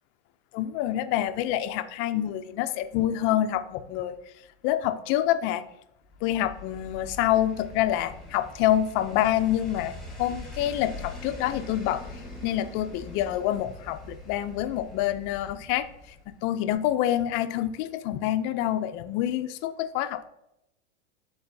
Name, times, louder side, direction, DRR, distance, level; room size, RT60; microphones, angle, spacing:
voice 1, 0.5-4.2 4.6-5.6 6.2-12.0 12.4-15.9 16.3-20.2, left 12 dB, 35° left, 9 dB, 0.5 m, -27 dB
sound 1, 6.1-16.5 16.7-16.8, left 2 dB, ahead, 1.3 m, -43 dB
11.0 x 3.8 x 2.7 m, 0.84 s
supercardioid pair, 135°, 36 cm